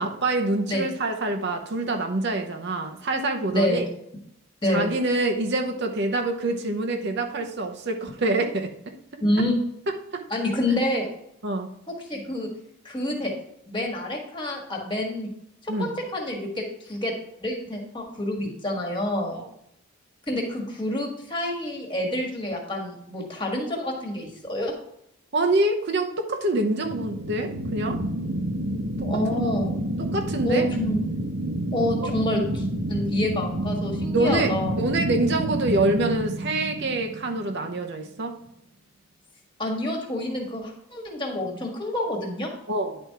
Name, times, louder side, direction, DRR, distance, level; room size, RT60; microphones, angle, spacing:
voice 1, 0.0-3.8 4.7-9.2 10.1-10.2 11.4-11.7 15.7-15.9 19.4-19.5 25.3-28.0 29.0-29.5 30.0-30.7 32.0-32.1 34.1-34.5 34.8-38.3 42.7-43.0, right 2 dB, 50° right, 4 dB, 0.8 m, -26 dB
voice 2, 3.5-3.9 4.6-4.9 9.2-9.5 10.3-11.1 11.9-12.5 12.8-13.3 13.7-15.3 15.6-17.1 17.4-19.4 20.3-24.7 29.0-29.8 30.4-31.0 31.7-34.8 39.6-42.5, left 1 dB, 20° left, 0 dB, 1.6 m, -27 dB
sound 1, 26.8-37.8, right 1 dB, 80° right, 1.3 m, -29 dB
10.5 x 4.4 x 4.6 m, 0.75 s
head